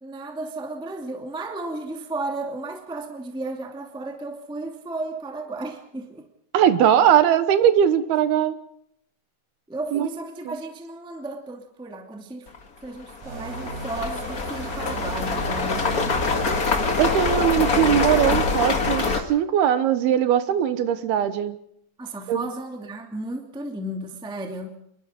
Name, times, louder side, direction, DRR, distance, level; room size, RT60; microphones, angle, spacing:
voice 1, 0.0-6.2 9.7-12.5 12.8-15.8 22.0-24.7, right 2 dB, ahead, 3 dB, 1.3 m, -34 dB
voice 2, 6.5-8.6 9.9-10.1 17.0-21.6 22.3-22.5, right 10 dB, 70° right, 11 dB, 2.9 m, -20 dB
sound 1, 12.5-12.6 13.1-19.2, left 4 dB, 60° left, 0.9 m, -24 dB
sound 2, 13.2-18.7, right 3 dB, 45° right, 6.2 m, -35 dB
26.5 x 22.0 x 5.1 m, 0.72 s
omnidirectional pair, 5.0 m